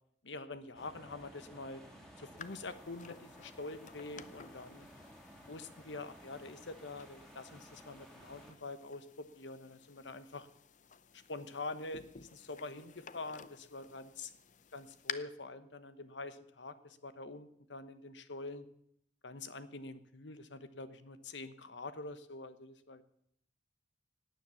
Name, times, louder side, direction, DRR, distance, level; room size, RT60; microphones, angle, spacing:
voice 1, 0.2-4.9 5.5-10.5 11.1-14.3 14.7-18.7 19.2-23.0, left 3 dB, 85° left, 12 dB, 1.1 m, -46 dB
sound 1, 0.7-8.5, equal, 5° left, 2.8 m, -56 dB
sound 2, 2.4-15.1, left 8 dB, 45° left, 0.6 m, -52 dB
17.5 x 9.3 x 7.0 m, 0.71 s
head